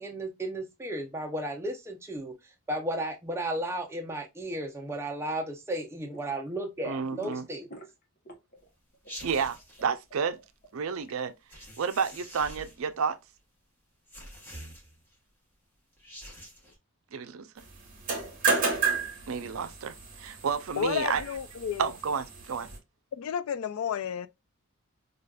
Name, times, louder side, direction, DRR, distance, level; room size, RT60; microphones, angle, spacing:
voice 1, 0.0-2.3 2.7-7.7, right 1 dB, 10° right, 0.6 m, -34 dB
sound 1, 5.6-6.4 6.6-8.7 8.9-11.1, left 1 dB, 40° left, 0.9 m, -48 dB
voice 2, 6.8-7.5 9.2-10.4 10.7-11.3 11.8-13.2 17.1-17.5 19.3-21.2 21.8-22.7, right 6 dB, 75° right, 0.5 m, -31 dB
sound 2, 9.1-9.8 11.5-12.9 14.1-15.1 15.9-16.8, equal, 10° left, 1.0 m, -46 dB
sound 3, 17.9-22.8, right 4 dB, 40° right, 1.1 m, -32 dB
voice 3, 20.8-21.9 23.1-24.3, left 8 dB, 80° left, 0.3 m, -31 dB
4.9 x 2.3 x 2.3 m
head